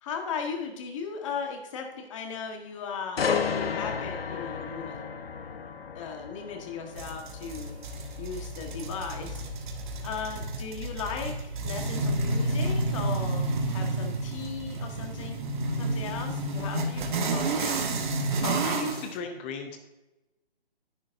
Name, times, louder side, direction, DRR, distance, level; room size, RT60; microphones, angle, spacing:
voice 1, 0.0-5.1 5.9-9.4 10.0-15.4 15.7-17.8, left 6 dB, 30° left, 3 dB, 1.5 m, -37 dB
sound 1, 3.2-17.0 17.4-17.7, left 6 dB, 70° left, 1.0 m, -36 dB
sound 2, 7.0-19.1, right 2 dB, 50° right, 1.5 m, -30 dB
voice 2, 18.4-19.8, left 4 dB, 10° left, 6 dB, 0.5 m, -35 dB
10.5 x 10.0 x 2.6 m, 1.0 s
hypercardioid pair, 150°, 31 cm